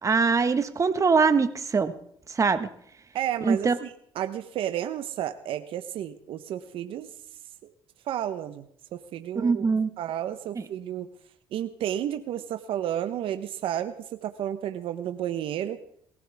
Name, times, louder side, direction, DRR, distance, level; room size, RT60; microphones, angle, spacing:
voice 1, 0.0-1.9 2.3-2.7 3.4-3.8 9.3-9.9, right 5 dB, 35° right, 10 dB, 1.5 m, -22 dB
voice 2, 3.1-7.1 7.6-7.7 8.0-8.6 8.9-9.7 10.0-11.1 11.5-15.8, right 11 dB, 70° right, 9 dB, 1.0 m, -32 dB
22.0 x 16.0 x 3.6 m, 0.67 s
supercardioid pair, 70°, 9 cm